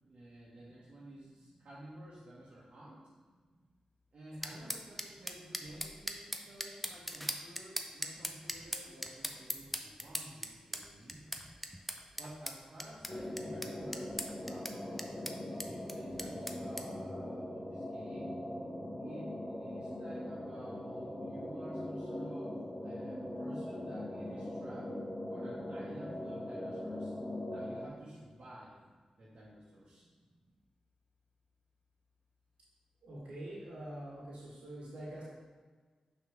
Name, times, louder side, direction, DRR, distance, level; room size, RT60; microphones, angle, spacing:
voice 1, 0.0-3.0 4.1-11.3 12.2-18.3 19.0-24.9 25.3-27.1 27.5-28.7 29.2-30.1, right 1 dB, 65° right, -9 dB, 1.7 m, -52 dB
sound 1, 4.4-16.9, equal, ahead, 0.7 m, -41 dB
sound 2, 13.1-27.9, left 1 dB, 20° left, 1.1 m, -41 dB
voice 2, 33.0-35.2, right 1 dB, 90° right, -8 dB, 1.8 m, -45 dB
6.0 x 4.3 x 5.2 m, 1.4 s
cardioid pair, 40°, 2 cm